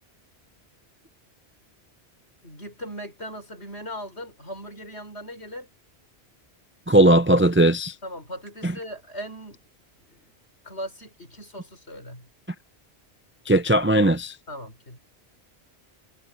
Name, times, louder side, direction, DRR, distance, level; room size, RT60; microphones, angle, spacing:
voice 1, 2.4-5.7 8.0-9.6 10.0-10.3 10.6-12.3 14.5-15.0, equal, 75° left, 6.5 m, -38 dB
voice 2, 6.9-7.9 8.6-8.7 13.5-14.4, right 1 dB, 15° right, 0.4 m, -18 dB
omnidirectional pair, 1.1 m